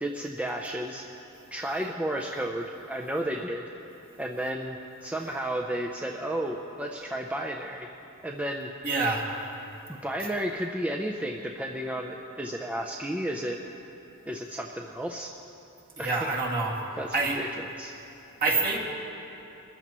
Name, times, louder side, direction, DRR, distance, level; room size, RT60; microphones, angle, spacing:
voice 1, 0.0-1.1 1.5-3.7 4.2-7.9 8.2-8.7 9.9-13.6 14.3-15.3 16.0-16.4 17.0-17.5 17.8-17.9, right 1 dB, 5° right, 0 dB, 0.5 m, -32 dB
voice 2, 8.8-9.3 16.0-16.8 17.1-17.4 18.4-18.8, right 3 dB, 45° right, -2 dB, 2.2 m, -26 dB
22.5 x 14.0 x 3.0 m, 3.0 s
head